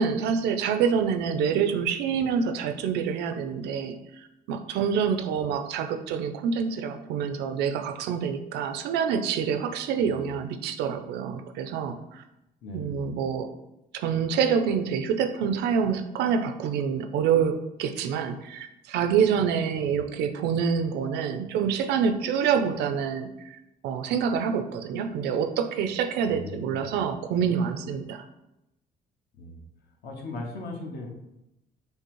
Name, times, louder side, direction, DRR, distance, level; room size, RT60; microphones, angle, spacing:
voice 1, 0.0-12.2 12.7-13.5 13.9-23.6 23.8-28.2, right 7 dB, 80° right, 7 dB, 0.4 m, -27 dB
voice 2, 12.6-13.0 19.8-20.0 26.3-27.0 29.4-29.6 30.0-31.1, left 2 dB, 70° left, 1 dB, 0.9 m, -38 dB
5.2 x 2.0 x 3.0 m, 0.89 s
cardioid pair, 110°, 17 cm